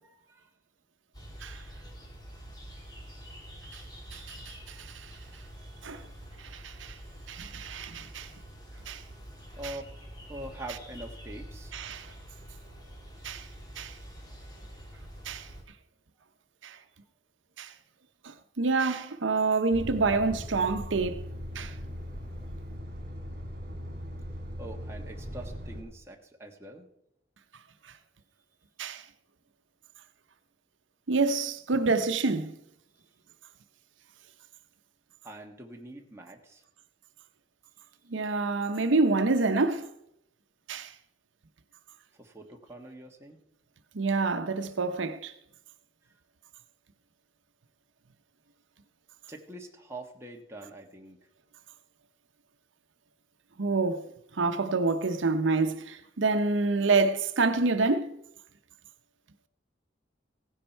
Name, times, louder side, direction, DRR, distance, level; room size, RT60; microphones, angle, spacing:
voice 1, 0.0-0.5 4.7-5.0 9.6-9.9 10.3-11.8 24.6-26.9 35.2-36.6 42.1-43.4 49.3-51.2, right 1 dB, 15° right, 1.4 m, -44 dB
sound 1, 1.1-15.6, equal, 20° left, 2.3 m, -46 dB
voice 2, 4.1-5.1 5.8-6.0 6.4-7.0 7.3-8.3 8.9-9.0 9.6-9.7 11.7-12.1 13.2-13.5 13.8-14.0 15.2-15.5 16.6-16.8 17.6-17.7 18.2-21.2 21.5-21.7 28.8-29.0 31.1-32.5 38.1-39.9 40.7-40.9 43.9-45.3 53.6-54.0 54.4-58.1, right 3 dB, 80° right, 0.8 m, -27 dB
Truck, 19.7-25.8, equal, 50° right, 3.4 m, -39 dB
16.5 x 9.9 x 4.5 m
head